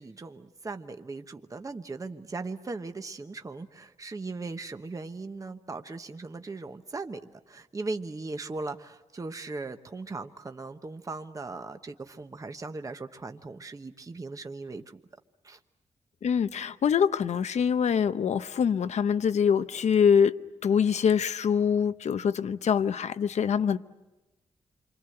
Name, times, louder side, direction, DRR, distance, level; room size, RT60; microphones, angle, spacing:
voice 1, 0.0-15.0 15.4-15.6, right 3 dB, 30° right, 1.1 m, -38 dB
voice 2, 16.2-23.8, left 7 dB, 70° left, 0.8 m, -24 dB
28.0 x 24.5 x 7.8 m
wide cardioid pair, 100°, 12 cm